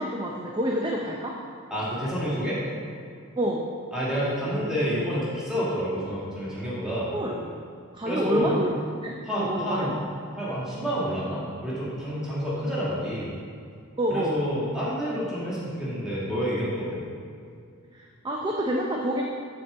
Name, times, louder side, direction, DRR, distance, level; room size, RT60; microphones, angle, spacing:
voice 1, 0.0-1.4 3.4-3.6 7.1-7.5 7.9-8.7 9.0-10.0 14.0-14.4 17.9-19.2, right 1 dB, 20° right, -1 dB, 0.5 m, -28 dB
voice 2, 1.7-2.6 3.9-7.2 8.0-8.5 9.2-9.9 10.4-13.3 14.1-17.0, equal, 5° right, -9 dB, 2.0 m, -28 dB
7.5 x 4.4 x 6.8 m, 2.3 s
head